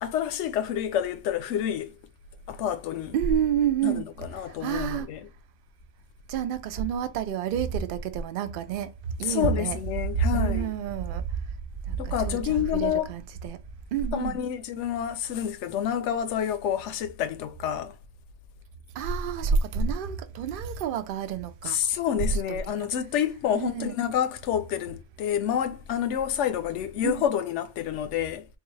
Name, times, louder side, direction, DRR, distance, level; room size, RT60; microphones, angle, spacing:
voice 1, 0.0-2.0 2.5-3.1 3.8-5.3 9.2-10.7 12.0-13.1 14.1-17.9 21.6-28.5, left 9 dB, 80° left, 0.9 m, -28 dB
voice 2, 3.1-4.1 4.6-5.1 6.3-8.9 9.2-9.8 10.3-11.2 11.9-13.6 13.9-14.4 19.0-21.8 22.2-22.9 23.5-24.0 27.0-27.2, right 7 dB, 60° right, 0.6 m, -28 dB
4.0 x 2.4 x 3.0 m
omnidirectional pair, 1.2 m